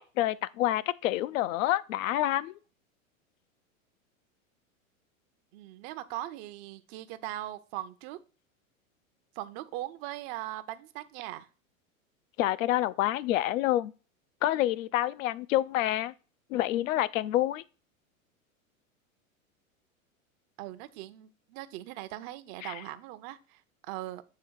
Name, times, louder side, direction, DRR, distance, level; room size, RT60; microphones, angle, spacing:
voice 1, 0.0-2.5 12.4-13.9 14.4-16.1 16.5-17.6 22.6-22.7, left 14 dB, 75° left, 0.5 m, -28 dB
voice 2, 5.5-8.2 9.4-11.5 20.6-24.2, right 15 dB, 50° right, 0.7 m, -40 dB
7.7 x 3.3 x 4.6 m
hypercardioid pair, 105°, 41 cm